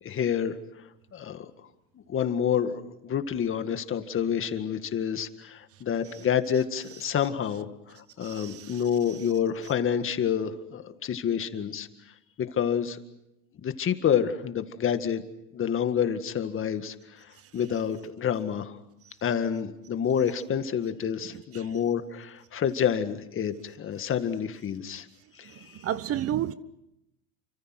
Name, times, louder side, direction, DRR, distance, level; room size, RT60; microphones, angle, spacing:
voice 1, 0.0-0.6 1.1-1.5 2.1-11.9 12.4-13.0 13.6-15.2 15.5-18.8 19.2-25.1 25.3-25.8, left 8 dB, 35° left, 1.9 m, -28 dB
voice 2, 8.2-8.8 9.1-9.2 21.5-21.6 25.4-26.5, right 11 dB, 40° right, 0.9 m, -32 dB
29.5 x 25.0 x 6.1 m
supercardioid pair, 115°, 38 cm